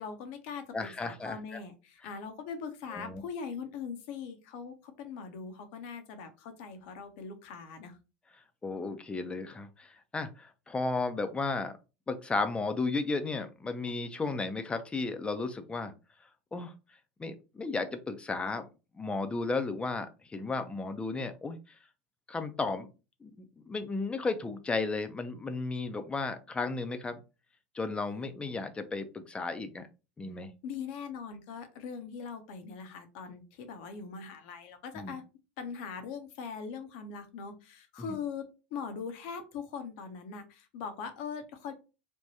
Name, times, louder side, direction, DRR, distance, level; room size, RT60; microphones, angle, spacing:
voice 1, 0.0-8.0 30.6-35.2 35.6-38.5 38.7-41.7, left 6 dB, 60° left, 8 dB, 0.7 m, -41 dB
voice 2, 0.7-1.6 2.9-3.2 8.6-11.7 12.1-15.9 16.5-16.7 17.2-18.7 18.9-21.6 22.3-22.9 23.2-27.2 27.7-29.9 30.2-30.5 34.9-35.1 38.0-38.1, left 3 dB, 15° left, 8 dB, 0.5 m, -34 dB
3.5 x 2.2 x 2.7 m, 0.30 s
hypercardioid pair, 85°, 6 cm